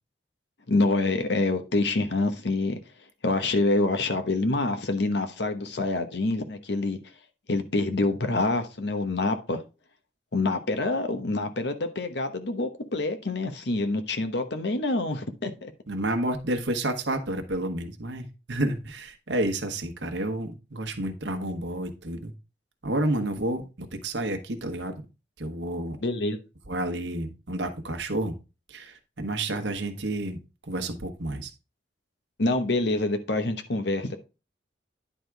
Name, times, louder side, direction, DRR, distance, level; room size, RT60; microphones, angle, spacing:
voice 1, 0.7-2.8 3.2-7.0 7.5-9.6 10.3-15.7 26.0-26.4 32.4-34.2, left 2 dB, 65° left, 1.0 m, -26 dB
voice 2, 15.9-22.3 22.8-24.9 25.4-26.0 26.7-28.3 28.7-31.5, right 1 dB, 75° right, 1.2 m, -30 dB
10.0 x 3.7 x 4.6 m
head